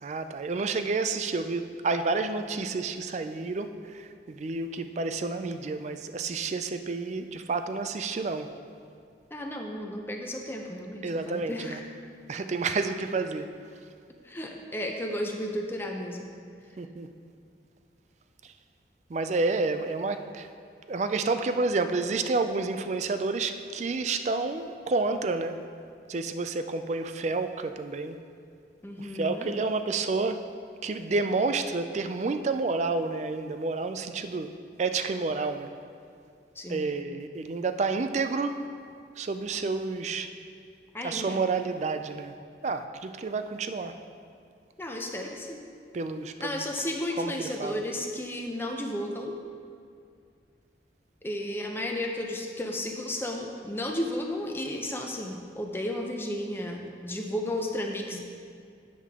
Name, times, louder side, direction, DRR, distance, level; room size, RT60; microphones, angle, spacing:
voice 1, 0.0-8.5 11.0-11.8 12.3-13.5 16.8-17.1 18.4-18.5 19.1-20.5 20.9-25.6 26.1-28.2 29.0-30.4 30.8-35.7 36.7-38.6 39.2-40.3 41.0-42.3 42.6-43.9 45.9-46.6 47.2-47.8, right 3 dB, 40° right, 9 dB, 0.4 m, -30 dB
voice 2, 9.3-11.8 14.2-16.3 28.8-29.5 36.6-36.9 40.9-41.4 44.8-45.6 46.4-49.3 51.2-58.2, left 1 dB, 10° left, 2 dB, 0.6 m, -33 dB
8.5 x 7.3 x 3.6 m, 2.3 s
head